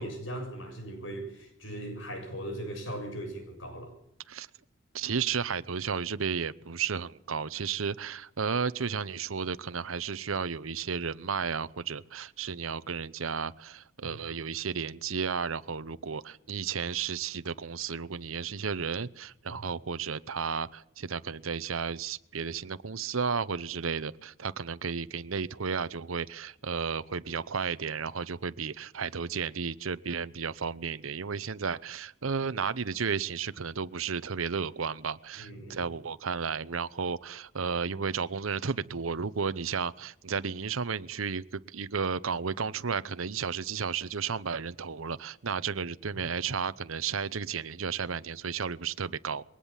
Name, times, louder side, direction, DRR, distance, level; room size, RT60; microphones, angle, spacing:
voice 1, 0.0-3.9 14.0-14.2 35.4-35.8 46.1-46.2, right 1 dB, 70° left, 7.2 m, -39 dB
voice 2, 4.9-49.4, right 6 dB, 90° right, 0.8 m, -33 dB
22.0 x 18.5 x 7.3 m
head